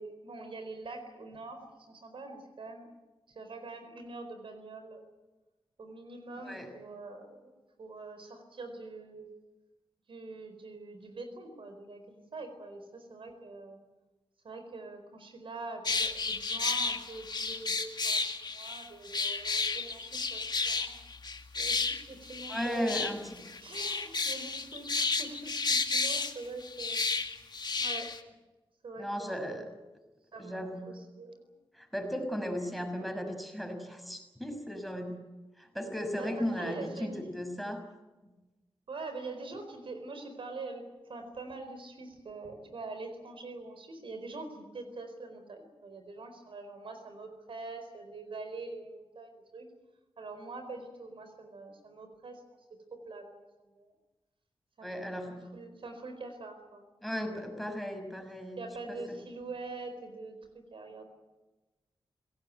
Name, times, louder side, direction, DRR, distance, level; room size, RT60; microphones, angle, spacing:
voice 1, 0.0-2.9 3.3-5.0 5.8-9.3 10.1-13.8 14.4-18.2 18.5-21.0 21.5-23.2 23.6-27.1 27.8-28.2 28.8-29.7 30.3-31.5 36.1-37.3 38.9-49.7 50.2-52.4 52.7-53.9 54.8-56.9 57.2-57.5 58.6-61.0, right 3 dB, 70° right, 7 dB, 4.5 m, -44 dB
voice 2, 6.4-6.7 22.5-23.4 29.0-29.6 30.4-30.9 31.7-35.2 35.6-37.8 38.2-38.3 54.8-55.4 57.0-58.6 58.9-59.2, equal, ahead, 5 dB, 5.9 m, -36 dB
sound 1, 15.9-28.2, left 4 dB, 50° left, 2.2 m, -32 dB
26.0 x 17.5 x 9.3 m, 1.1 s
cardioid pair, 65°, 9 cm